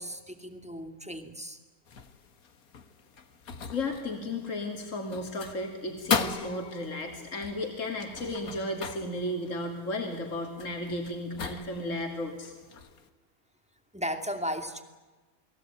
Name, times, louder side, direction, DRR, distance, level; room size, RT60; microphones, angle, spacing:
voice 1, 0.0-1.6 13.9-14.8, equal, 5° right, 7 dB, 2.4 m, -35 dB
sound 1, 1.9-13.1, left 6 dB, 80° left, 2.0 m, -38 dB
voice 2, 3.7-12.5, left 1 dB, 60° left, 3 dB, 3.4 m, -34 dB
30.0 x 20.5 x 9.3 m, 1.3 s
omnidirectional pair, 1.5 m